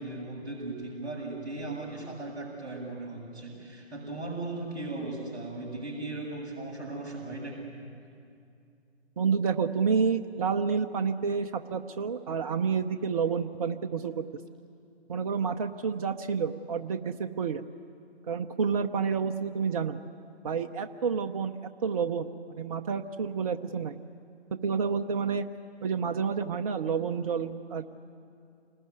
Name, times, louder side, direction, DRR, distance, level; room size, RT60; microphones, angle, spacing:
voice 1, 0.0-7.6, right 2 dB, 10° right, -6 dB, 6.7 m, -37 dB
voice 2, 9.2-14.2 15.1-17.6 18.3-20.0 20.4-21.5 21.8-24.0 24.6-25.4 25.8-27.8, right 6 dB, 35° right, 6 dB, 0.7 m, -29 dB
28.5 x 20.0 x 9.4 m, 2.4 s
figure-of-eight pair, 145°, 33 cm